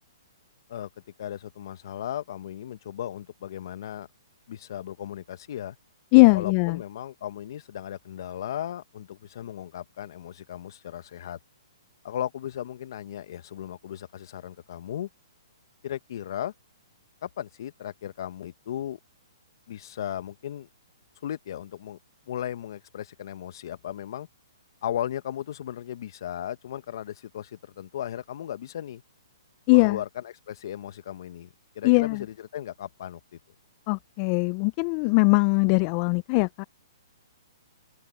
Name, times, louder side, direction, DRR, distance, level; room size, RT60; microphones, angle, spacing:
voice 1, 1.2-4.1 4.5-5.8 6.3-11.4 12.0-15.1 15.8-16.5 17.2-19.0 19.7-20.7 21.2-22.0 22.3-24.3 24.8-29.0 29.7-33.2, left 10 dB, 60° left, 1.3 m, -36 dB
voice 2, 6.1-6.8 29.7-30.0 31.8-32.2 33.9-36.6, left 29 dB, 35° left, 0.5 m, -20 dB
hypercardioid pair, 135°, 3 cm